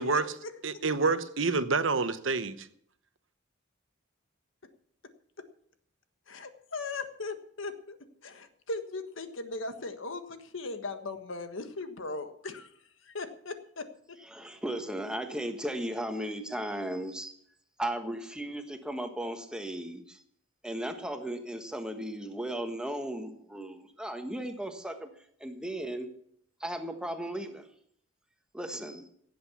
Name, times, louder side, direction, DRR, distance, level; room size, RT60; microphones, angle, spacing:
voice 1, 0.0-0.5 6.3-8.0 8.2-12.7 13.0-13.8, left 3 dB, 85° left, 8 dB, 1.5 m, -38 dB
voice 2, 0.6-2.7, right 4 dB, 75° right, 12 dB, 1.0 m, -27 dB
voice 3, 14.2-17.3 17.8-20.2 20.6-25.1 25.4-26.1 26.6-27.7 28.5-29.1, right 1 dB, 5° right, 6 dB, 1.4 m, -36 dB
16.0 x 8.0 x 7.1 m, 0.66 s
head